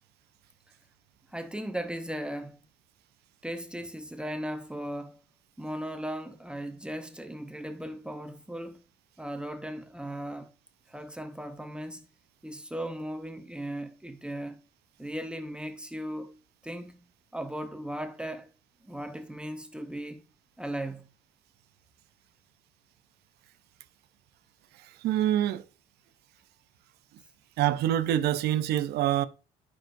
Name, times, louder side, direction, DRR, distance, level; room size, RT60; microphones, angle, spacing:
voice 1, 1.3-2.6 3.4-5.2 5.6-8.8 9.2-10.5 10.9-12.1 12.4-14.6 15.0-16.3 16.6-17.0 17.3-18.5 18.9-20.2 20.6-21.1, right 1 dB, 5° right, 0.7 m, -37 dB
voice 2, 24.8-25.6 27.6-29.3, right 12 dB, 75° right, 0.6 m, -26 dB
9.0 x 6.0 x 2.6 m
cardioid pair, 110°, 17 cm